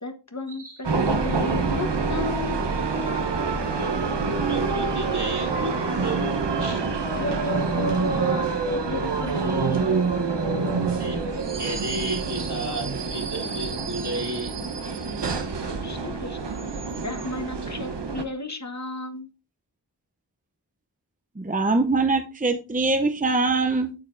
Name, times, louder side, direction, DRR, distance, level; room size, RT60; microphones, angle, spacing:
voice 1, 0.0-2.7 7.2-10.1 15.8-16.6 17.0-19.3, left 2 dB, 40° left, 1.2 m, -34 dB
sound 1, 0.8-18.2, right 4 dB, 90° right, 1.0 m, -26 dB
voice 2, 3.8-7.0 11.0-11.2 11.6-14.5, right 2 dB, 70° right, 3.3 m, -33 dB
voice 3, 21.4-23.9, right 3 dB, 20° right, 0.7 m, -23 dB
9.2 x 6.9 x 2.6 m
wide cardioid pair, 45°, 41 cm